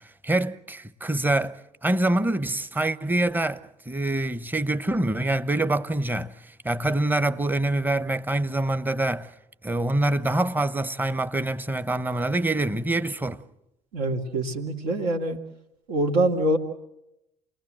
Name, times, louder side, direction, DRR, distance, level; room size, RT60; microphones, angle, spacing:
voice 1, 0.0-3.6 3.9-9.3 9.6-13.4, right 2 dB, 10° right, 1.0 m, -25 dB
voice 2, 13.9-15.4 15.9-16.6, right 1 dB, 75° right, 2.6 m, -24 dB
28.5 x 19.0 x 7.7 m
hypercardioid pair, 65°, 19 cm